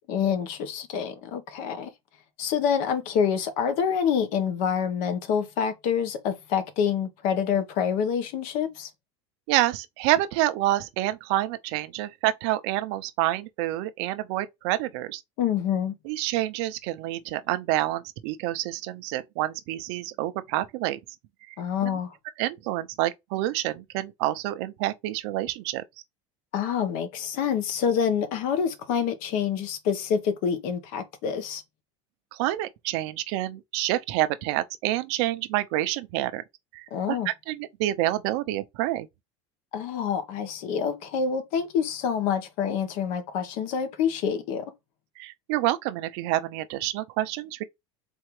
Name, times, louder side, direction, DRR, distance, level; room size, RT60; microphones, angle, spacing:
voice 1, 0.1-1.9 2.4-8.9 15.4-15.9 21.6-22.1 26.5-31.6 36.9-37.3 39.7-44.6, left 7 dB, 65° left, 1.3 m, -27 dB
voice 2, 9.5-15.2 16.0-21.0 21.5-21.6 21.8-22.0 22.4-25.8 32.3-36.4 36.7-39.1 45.2-47.6, right 15 dB, 70° right, 0.7 m, -28 dB
4.5 x 3.5 x 3.2 m
supercardioid pair, 125°, 15 cm